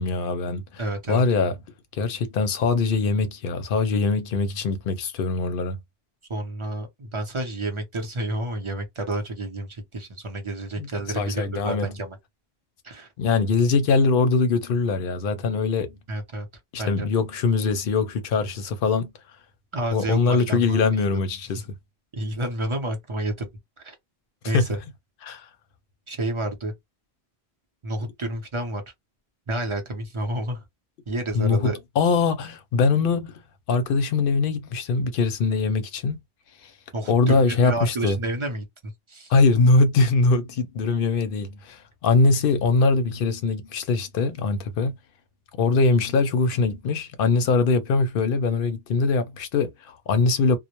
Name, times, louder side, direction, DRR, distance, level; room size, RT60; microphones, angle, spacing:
voice 1, 0.0-0.6 1.1-1.5 1.9-5.8 10.8-10.9 11.2-11.9 13.2-16.0 16.7-19.1 19.9-21.6 24.5-24.7 25.2-25.5 31.4-33.4 33.7-36.2 37.1-38.2 39.3-45.0 45.6-50.6, left 4 dB, 65° left, 0.7 m, -22 dB
voice 2, 0.8-1.2 6.3-12.2 12.8-13.1 16.1-16.5 16.8-17.1 19.7-21.2 22.1-23.5 23.8-23.9 24.4-24.8 26.1-26.7 27.8-28.8 29.5-30.6 31.1-31.8 36.9-39.3, right 1 dB, 35° right, 0.6 m, -30 dB
2.1 x 2.0 x 2.9 m
omnidirectional pair, 1.1 m